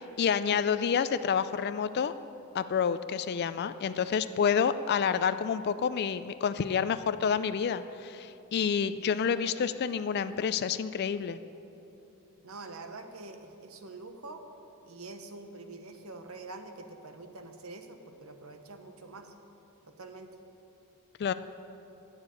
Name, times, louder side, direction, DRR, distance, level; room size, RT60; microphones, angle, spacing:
voice 1, 0.2-2.1 2.5-11.4 21.2-21.3, left 7 dB, 50° left, 12 dB, 0.3 m, -28 dB
voice 2, 12.4-14.4 14.8-19.3 20.0-20.3, right 3 dB, 70° right, 7 dB, 0.9 m, -45 dB
9.5 x 7.3 x 8.5 m, 2.9 s
head